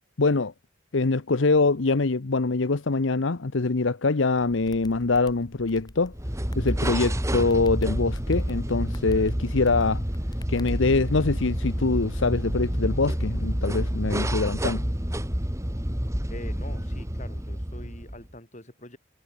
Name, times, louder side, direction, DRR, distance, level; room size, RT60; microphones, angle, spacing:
voice 1, 0.2-0.5 0.9-6.1 6.6-10.0 10.5-14.8, left 3 dB, 75° left, 0.9 m, -24 dB
sound 1, 4.4-10.7, left 1 dB, 20° left, 2.4 m, -47 dB
sound 2, 6.1-18.3, equal, 15° right, 2.5 m, -28 dB
voice 2, 16.3-19.0, left 1 dB, 40° left, 7.0 m, -44 dB
head